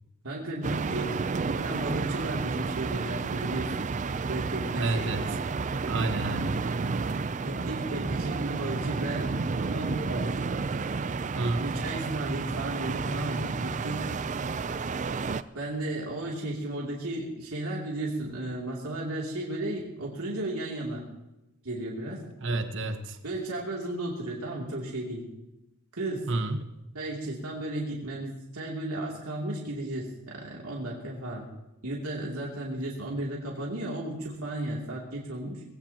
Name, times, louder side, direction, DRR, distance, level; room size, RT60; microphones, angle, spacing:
voice 1, 0.2-3.9 4.3-5.3 6.4-6.5 7.3-9.3 9.6-10.3 11.6-14.1 15.5-21.0 21.6-22.2 23.2-25.2 25.9-26.3 26.9-31.4 31.8-35.6, right 1 dB, 75° right, -3 dB, 2.8 m, -34 dB
sound 1, 0.6-15.4, right 4 dB, 35° right, 0.4 m, -31 dB
voice 2, 4.7-5.3 5.9-6.8 11.3-11.6 22.4-23.2 26.3-26.7, right 2 dB, 60° right, 8 dB, 1.2 m, -30 dB
20.5 x 16.5 x 2.9 m, 0.95 s
head